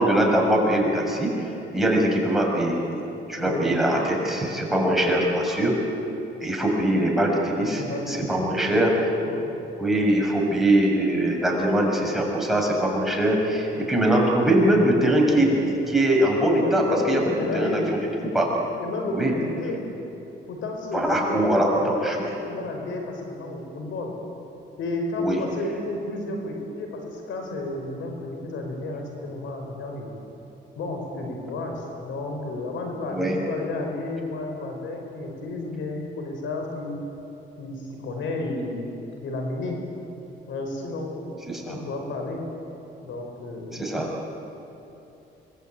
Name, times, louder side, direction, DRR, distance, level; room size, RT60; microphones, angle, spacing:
voice 1, 0.0-2.8 3.3-5.8 6.4-9.1 9.8-15.5 15.9-17.2 17.5-17.8 18.3-18.5 19.1-19.3 20.9-22.2 25.2-25.4 33.1-33.4 41.5-41.8 43.7-44.1, right 1 dB, ahead, -2 dB, 6.7 m, -22 dB
voice 2, 3.4-3.7 7.8-8.6 9.3-9.5 13.7-13.9 15.3-15.5 16.5-18.0 18.8-19.8 20.5-24.1 24.8-30.1 30.8-37.0 37.6-38.8 39.2-39.8 40.5-42.4 43.0-43.8, left 2 dB, 75° left, 2 dB, 5.3 m, -31 dB
26.0 x 21.0 x 9.2 m, 2.9 s
cardioid pair, 90°, 20 cm